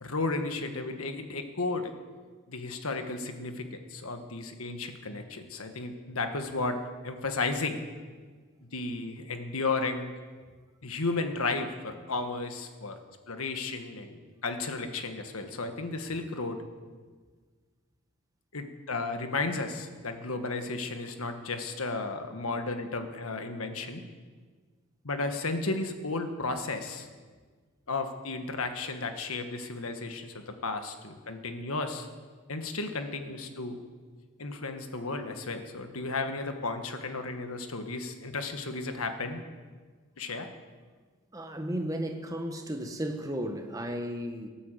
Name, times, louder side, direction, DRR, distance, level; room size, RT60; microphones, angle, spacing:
voice 1, 0.0-1.9 2.5-7.8 8.7-10.1 10.8-13.0 13.3-16.6 18.5-24.0 25.0-27.1 27.9-32.1 32.5-33.8 34.4-39.4 40.2-40.5, left 3 dB, 80° left, 6 dB, 1.5 m, -33 dB
voice 2, 41.3-44.5, equal, 15° right, 5 dB, 1.1 m, -34 dB
18.0 x 9.0 x 7.7 m, 1.5 s
head